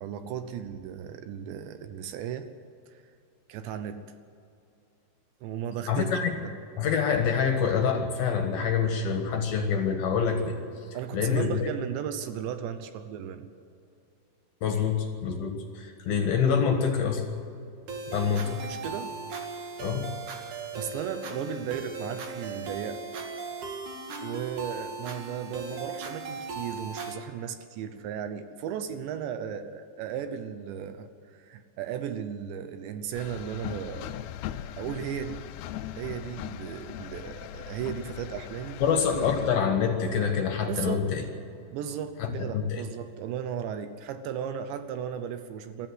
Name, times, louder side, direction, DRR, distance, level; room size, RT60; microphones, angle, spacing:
voice 1, 0.0-2.5 2.9-3.0 3.5-4.1 5.4-6.1 6.4-6.5 10.9-13.5 18.6-19.2 20.4-23.0 24.2-34.2 34.8-35.4 36.0-38.8 40.7-41.0 41.7-45.9, right 8 dB, 75° right, 9 dB, 2.9 m, -35 dB
voice 2, 5.9-6.3 6.8-11.7 14.6-17.4 18.1-18.7 19.8-20.1 38.8-41.2 42.2-42.8, left 6 dB, 60° left, 4 dB, 2.8 m, -26 dB
sound 1, 17.9-27.1, right 4 dB, 50° right, 2.6 m, -38 dB
sound 2, 33.1-39.5, left 11 dB, 90° left, 2.4 m, -39 dB
23.0 x 14.0 x 7.9 m, 2.6 s
omnidirectional pair, 5.5 m